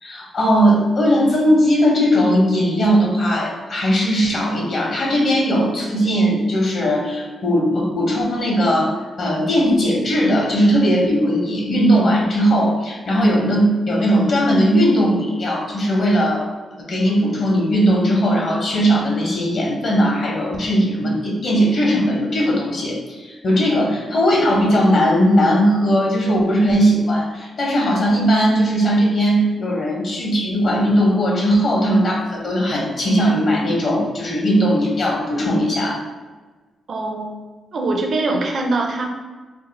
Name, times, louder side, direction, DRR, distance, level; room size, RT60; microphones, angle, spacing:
voice 1, 0.0-16.5 16.8-36.0, equal, 55° left, -2 dB, 0.9 m, -18 dB
voice 2, 36.9-37.4 37.7-39.1, right 2 dB, 50° right, 1 dB, 0.4 m, -23 dB
2.6 x 2.4 x 4.0 m, 1.3 s
cardioid pair, 115°, 0 cm